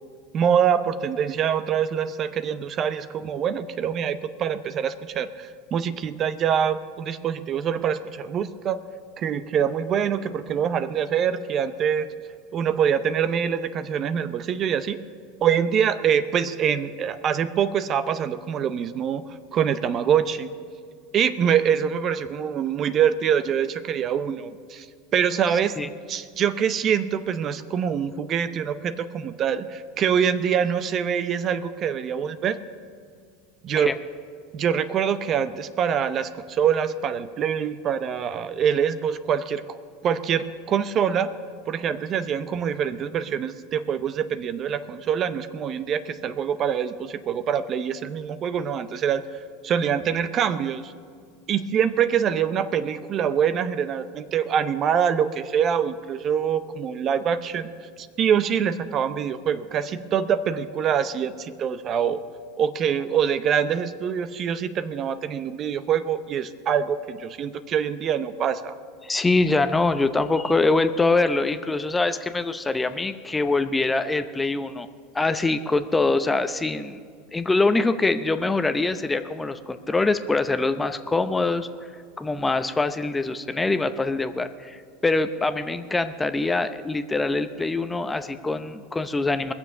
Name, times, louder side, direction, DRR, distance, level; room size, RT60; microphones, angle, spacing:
voice 1, 0.3-8.8 9.2-12.1 12.5-15.0 15.4-19.2 19.5-20.5 21.1-24.9 25.1-32.6 33.6-33.9 34.5-39.8 40.0-41.3 41.7-49.2 49.6-50.9 51.5-57.7 58.0-62.2 62.6-68.7, right 8 dB, 40° right, 12 dB, 0.6 m, -24 dB
voice 2, 69.0-74.9 75.1-77.0 77.3-81.7 82.2-89.5, left 3 dB, 15° left, 10 dB, 0.7 m, -24 dB
21.0 x 7.1 x 6.7 m, 2.1 s
hypercardioid pair, 100°, 0 cm